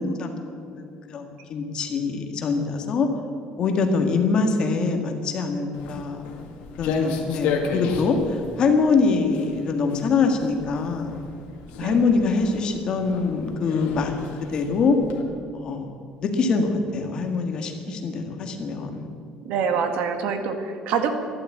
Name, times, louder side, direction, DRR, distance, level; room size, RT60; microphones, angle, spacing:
voice 1, 0.0-3.1 3.6-6.2 6.8-11.1 11.8-14.1 14.5-15.0 15.5-15.9 16.2-19.1, left 4 dB, 35° left, 4 dB, 1.7 m, -24 dB
Walk footsteps, 5.7-15.2, left 4 dB, 80° left, 2.0 m, -33 dB
voice 2, 11.8-12.3 19.5-21.1, right 6 dB, 65° right, 6 dB, 1.6 m, -26 dB
13.0 x 11.5 x 8.5 m, 2.3 s
cardioid pair, 170°, 2 cm